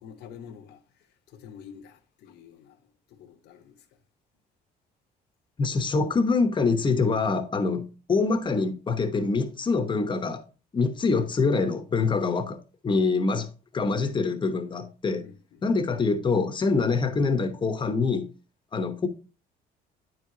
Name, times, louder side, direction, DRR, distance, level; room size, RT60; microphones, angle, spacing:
voice 1, 0.0-2.8 3.1-3.8 15.2-15.7, left 7 dB, 75° left, 1.0 m, -48 dB
voice 2, 5.6-10.4 10.7-13.5 13.7-15.3 15.6-18.3 18.7-19.1, left 4 dB, 30° left, 0.9 m, -25 dB
9.3 x 4.7 x 2.6 m
cardioid pair, 110°, 17 cm